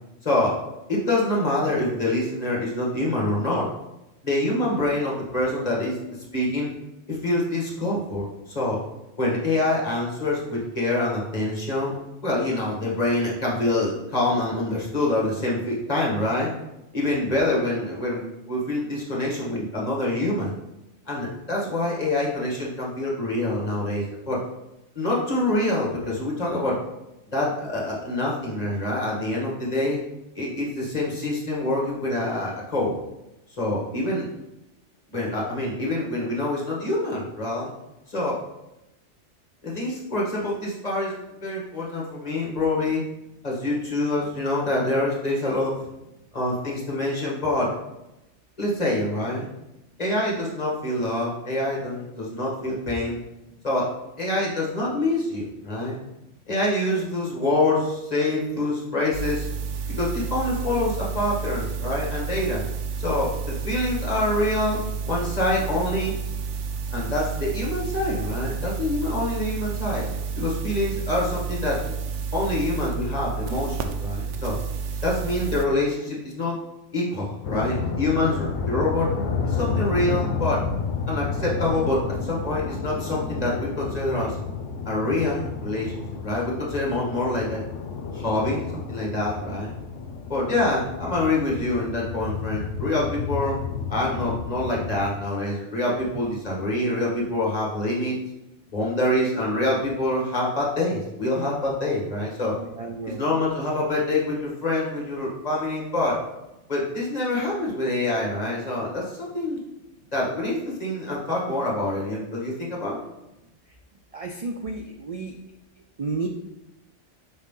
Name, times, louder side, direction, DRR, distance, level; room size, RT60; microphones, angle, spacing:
voice 1, 0.2-0.6 0.9-3.7 4.2-6.0 6.3-6.7 7.1-8.3 8.5-8.8 9.2-11.9 12.2-16.5 16.9-20.5 21.1-24.4 25.0-26.8 27.3-30.0 30.4-32.9 33.6-34.3 35.1-37.7 38.1-38.4 39.6-41.1 41.4-43.0 43.4-45.8 46.3-47.7 48.6-49.5 50.0-53.2 53.6-53.9 54.2-56.0 56.5-59.5 60.0-62.7 63.0-64.8 65.1-66.1 66.9-70.1 70.4-71.9 72.3-74.6 75.0-76.6 76.9-79.1 79.4-80.6 81.1-84.4 84.9-87.6 88.1-89.7 90.3-93.6 93.9-98.1 98.7-102.6 103.1-106.2 106.7-109.6 110.1-113.0, left 1 dB, 35° left, -3 dB, 1.8 m, -26 dB
sound 1, 59.1-75.6, right 5 dB, 80° right, 1.0 m, -30 dB
sound 2, 77.4-95.1, left 5 dB, 75° left, 1.0 m, -31 dB
voice 2, 102.6-103.2 114.1-115.3 116.0-116.3, right 3 dB, 50° right, 3 dB, 0.4 m, -31 dB
6.4 x 4.7 x 3.8 m, 0.93 s
omnidirectional pair, 1.2 m